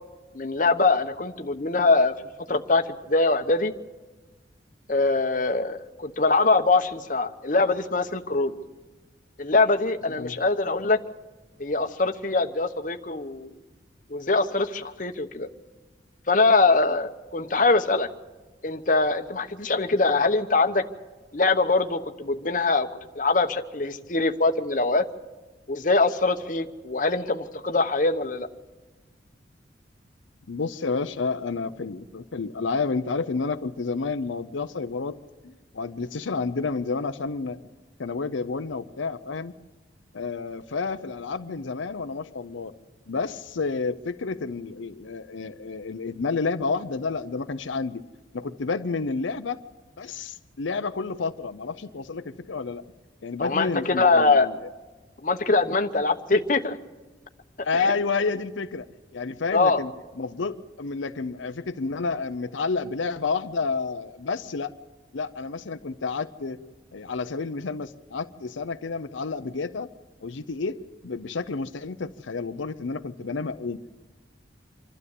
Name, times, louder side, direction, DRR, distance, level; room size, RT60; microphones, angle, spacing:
voice 1, 0.3-2.1 2.5-3.7 4.9-8.5 9.4-11.0 11.6-13.5 14.1-15.5 16.3-18.1 18.6-20.8 21.3-22.9 23.2-25.0 25.7-28.5 53.4-54.5 55.2-56.8 57.8-57.9 59.5-59.8, left 3 dB, 45° left, 7 dB, 1.0 m, -23 dB
voice 2, 30.5-35.2 35.4-37.6 38.0-39.5 40.1-42.7 43.1-48.0 48.3-49.6 50.0-52.8 53.2-54.6 57.6-58.9 59.1-59.9 60.2-64.7 65.1-66.6 66.9-69.9 70.2-70.8 71.0-74.0, left 4 dB, 80° left, 9 dB, 0.6 m, -30 dB
26.5 x 12.5 x 8.4 m, 1.3 s
head